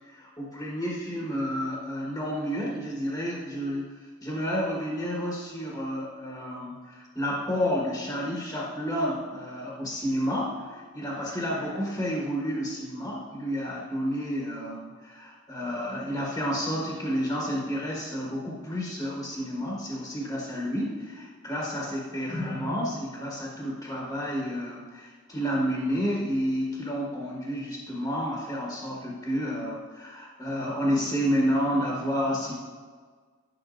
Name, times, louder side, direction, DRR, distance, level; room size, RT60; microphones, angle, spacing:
voice 1, 0.1-3.8 4.2-32.5, equal, 15° left, -5 dB, 1.4 m, -30 dB
12.0 x 5.9 x 2.6 m, 1.6 s
head